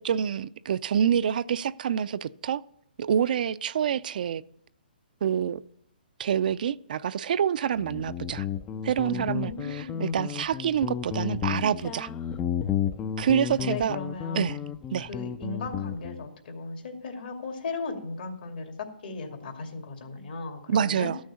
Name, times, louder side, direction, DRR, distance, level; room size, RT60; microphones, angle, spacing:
voice 1, 0.0-2.6 3.0-4.4 5.2-5.6 6.2-8.5 8.8-12.1 13.2-14.0 14.3-14.6 14.9-15.1 20.7-21.2, right 8 dB, 55° right, 0.4 m, -27 dB
Guitar, 7.8-16.2, left 8 dB, 15° left, 0.4 m, -32 dB
voice 2, 9.0-10.2 13.6-14.5 15.0-21.1, left 3 dB, 65° left, 2.5 m, -37 dB
13.0 x 6.4 x 6.9 m
hypercardioid pair, 145°, 5 cm